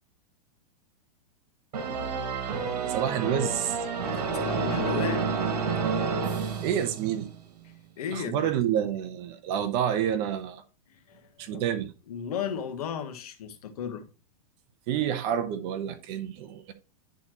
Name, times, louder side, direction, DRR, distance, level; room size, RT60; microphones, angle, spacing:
sound 1, 1.7-7.4, right 5 dB, 80° right, 1.9 m, -29 dB
voice 1, 2.9-3.8 6.6-7.3 8.1-10.6 11.4-11.9 14.9-16.7, right 9 dB, 40° right, 1.0 m, -28 dB
voice 2, 4.1-5.3 8.0-8.5 11.1-11.2 11.5-11.6 12.1-14.1, left 7 dB, 70° left, 1.3 m, -34 dB
10.5 x 4.2 x 3.0 m
supercardioid pair, 155°, 20 cm